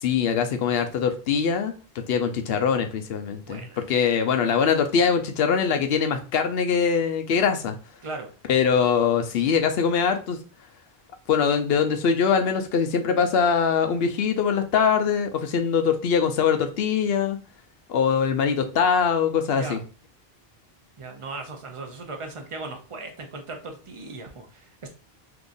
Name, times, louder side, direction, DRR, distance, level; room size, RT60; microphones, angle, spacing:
voice 1, 0.0-1.7 2.1-7.8 8.5-10.4 11.3-17.4 17.9-19.8, left 6 dB, 75° left, 7 dB, 0.8 m, -22 dB
voice 2, 3.5-3.8 8.0-8.3 19.6-19.8 21.0-24.9, right 3 dB, 35° right, 4 dB, 0.6 m, -37 dB
3.7 x 2.9 x 2.5 m, 0.36 s
omnidirectional pair, 1.0 m